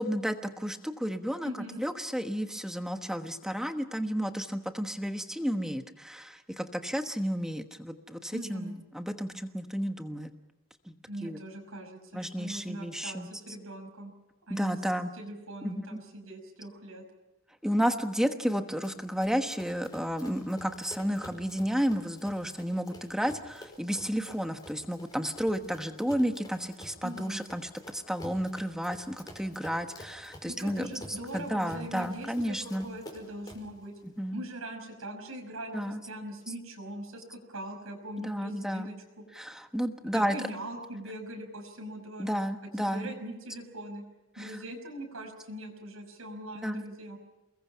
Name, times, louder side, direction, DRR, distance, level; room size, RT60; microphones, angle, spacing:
voice 1, 0.0-1.5 1.8-10.3 10.9-11.0 11.2-11.4 12.1-13.3 14.5-15.1 15.6-16.0 17.6-30.9 31.3-32.9 34.2-34.4 35.7-36.0 38.2-38.9 39.3-40.4 42.2-43.1 44.4-44.6 46.6-46.8, equal, ahead, 6 dB, 1.2 m, -32 dB
voice 2, 1.4-1.8 8.3-8.7 11.1-14.1 14.5-14.8 15.1-17.0 27.0-27.4 30.4-33.9 34.3-38.9 40.0-42.4 42.9-44.0 44.4-47.2, right 1 dB, 70° right, 1 dB, 5.7 m, -41 dB
Run, 18.8-33.8, left 1 dB, 20° left, 4.7 m, -50 dB
29.5 x 21.5 x 5.7 m, 1.0 s
head